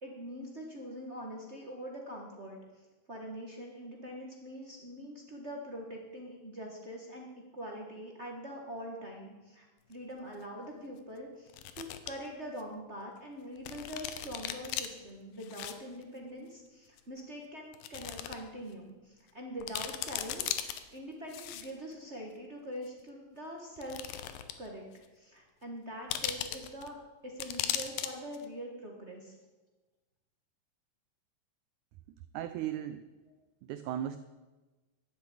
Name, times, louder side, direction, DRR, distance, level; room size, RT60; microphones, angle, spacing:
voice 1, 0.0-24.2 24.6-24.9 25.1-27.0 27.2-29.3, equal, 65° right, -1 dB, 0.6 m, -44 dB
sound 1, 9.9-10.0 11.5-12.1 12.6-12.7 13.7-14.9 15.4-15.7 16.0-16.1 17.0-17.1 17.7-18.4 18.7-18.8 19.3-19.4 19.6-20.8 21.3-21.9 22.9-23.0 23.8-24.7 25.0-25.1 26.1-26.9 27.4-28.1 28.3-28.5, left 11 dB, 85° left, 2.6 m, -37 dB
voice 2, 32.3-33.0 33.7-34.2, right 11 dB, 85° right, 11 dB, 1.7 m, -36 dB
12.0 x 8.1 x 8.5 m, 1.2 s
omnidirectional pair, 4.0 m